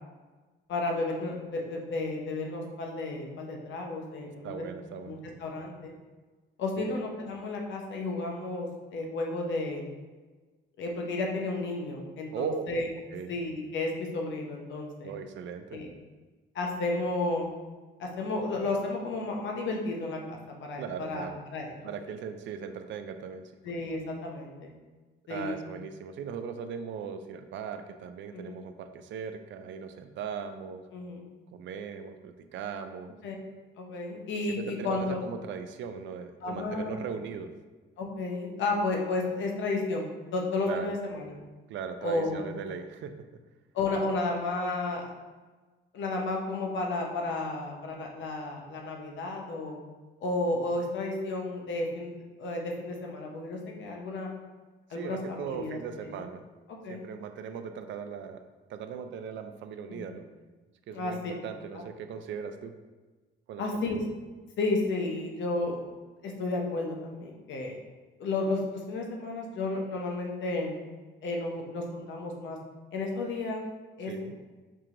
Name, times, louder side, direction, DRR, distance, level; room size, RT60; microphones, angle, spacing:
voice 1, 0.7-4.6 5.0-5.9 6.6-9.8 10.8-12.9 13.3-15.1 15.7-15.9 16.5-17.5 18.0-21.7 23.6-24.7 25.3-25.6 28.3-28.6 30.9-31.2 33.2-33.4 33.8-35.2 36.4-37.0 38.0-41.3 42.0-42.4 43.7-45.1 45.9-49.8 50.2-52.1 52.4-54.3 54.9-55.8 56.1-56.2 56.8-57.0 59.9-60.2 60.9-61.1 61.7-61.8 63.6-64.0 64.6-65.8 66.2-67.8 68.2-70.7 71.2-72.6 72.9-73.6 74.0-74.3, left 2 dB, 70° left, 0 dB, 0.8 m, -32 dB
voice 2, 4.4-5.3 6.8-7.0 12.3-12.6 13.1-13.3 15.0-15.8 20.8-21.4 21.8-23.5 25.3-30.8 31.5-33.2 34.5-37.5 40.7-40.9 41.7-43.1 55.0-56.4 56.9-58.4 58.7-60.2 60.9-62.7 63.5-63.9 74.1-74.3, right 6 dB, 70° right, 8 dB, 0.4 m, -38 dB
4.6 x 2.9 x 2.5 m, 1.3 s
cardioid pair, 90°, 20 cm